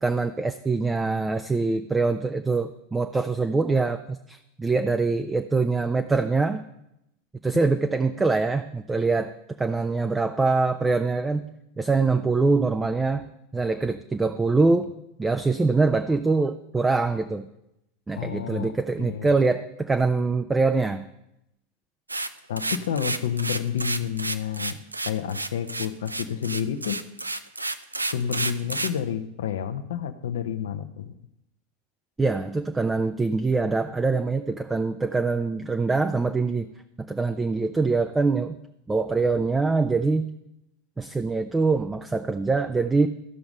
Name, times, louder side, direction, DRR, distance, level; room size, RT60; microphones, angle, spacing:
voice 1, 0.0-6.6 7.4-9.3 9.6-11.5 11.8-14.9 15.2-17.5 18.1-21.1 32.2-36.7 37.0-38.6 38.9-40.3 41.0-43.1, right 3 dB, 15° right, 8 dB, 0.5 m, -24 dB
voice 2, 18.2-18.7 19.0-19.4 22.5-24.8 25.0-27.0 28.1-31.1, left 8 dB, 65° left, 10 dB, 0.7 m, -29 dB
sound 1, 22.1-29.0, right 2 dB, 90° right, 0.4 m, -30 dB
14.0 x 5.9 x 5.3 m, 0.85 s
figure-of-eight pair, 85°, 0 cm